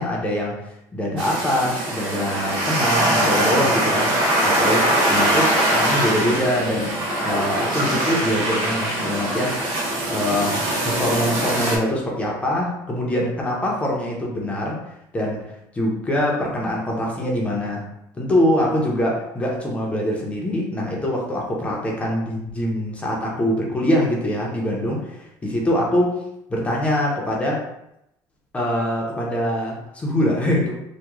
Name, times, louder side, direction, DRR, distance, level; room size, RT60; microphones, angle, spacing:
voice 1, 0.0-9.5 10.1-14.8 15.1-17.9 18.1-26.1 26.5-27.6 28.5-30.7, left 1 dB, 15° left, -2 dB, 0.6 m, -24 dB
sound 1, 1.2-11.8, right 1 dB, 80° right, 0.9 m, -22 dB
2.9 x 2.2 x 3.5 m, 0.82 s
cardioid pair, 140°, 8 cm